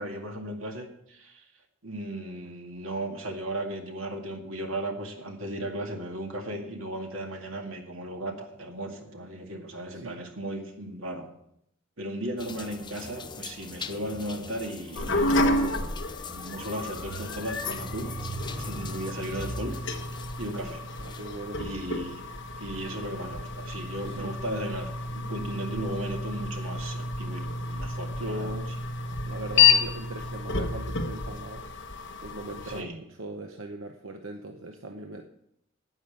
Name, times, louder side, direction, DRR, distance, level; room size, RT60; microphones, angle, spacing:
voice 1, 0.0-1.4 1.8-11.3 12.0-15.9 16.3-18.1 18.5-19.7 20.4-20.8 21.6-22.3 22.6-28.5 32.7-32.9, right 1 dB, 90° right, 2 dB, 2.1 m, -36 dB
sound 1, 12.4-21.5, left 5 dB, 25° left, 0.6 m, -43 dB
sound 2, 14.9-32.8, left 4 dB, 65° left, 1.2 m, -30 dB
voice 2, 21.0-21.6 24.0-24.3 28.1-28.9 29.2-31.6 32.2-35.2, right 1 dB, 70° right, 4 dB, 0.9 m, -39 dB
9.6 x 9.2 x 6.8 m, 0.76 s
head